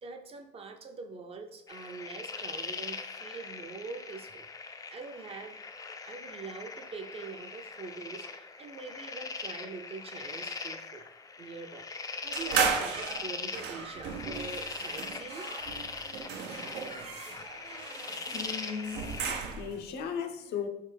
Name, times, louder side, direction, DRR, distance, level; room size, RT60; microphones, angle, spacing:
voice 1, 0.0-5.6 6.0-11.0 11.4-15.5, right 4 dB, 35° right, 5 dB, 0.5 m, -44 dB
sound 1, 1.7-19.3, left 4 dB, 20° left, 0.3 m, -41 dB
sound 2, 12.3-19.8, right 6 dB, 90° right, 0.6 m, -35 dB
voice 2, 18.3-20.7, left 7 dB, 75° left, 5 dB, 0.6 m, -37 dB
4.4 x 3.3 x 3.3 m, 0.83 s
cardioid pair, 110°, 17 cm